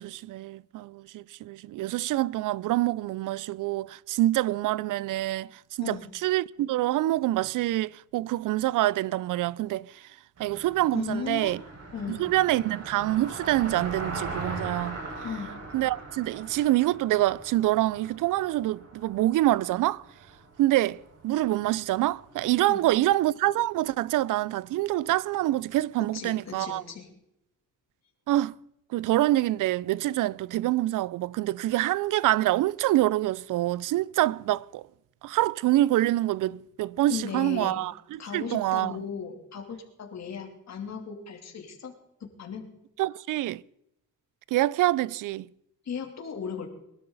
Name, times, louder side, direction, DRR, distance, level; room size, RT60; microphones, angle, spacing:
voice 1, 0.0-5.5 5.8-10.0 10.4-11.6 12.1-15.0 15.7-20.0 20.6-26.8 28.3-28.6 28.9-34.9 35.2-39.0 43.0-43.6 44.5-45.5, right 15 dB, 80° right, 0.5 m, -26 dB
Car passing by, 10.4-22.7, right 3 dB, 50° right, 5.6 m, -40 dB
voice 2, 10.9-11.6 11.9-12.2 15.2-15.5 22.7-22.9 26.0-27.1 37.1-37.8 38.2-41.9 42.2-42.6 45.8-46.7, left 6 dB, 55° left, 3.1 m, -36 dB
22.0 x 12.5 x 4.0 m
cardioid pair, 95°, 31 cm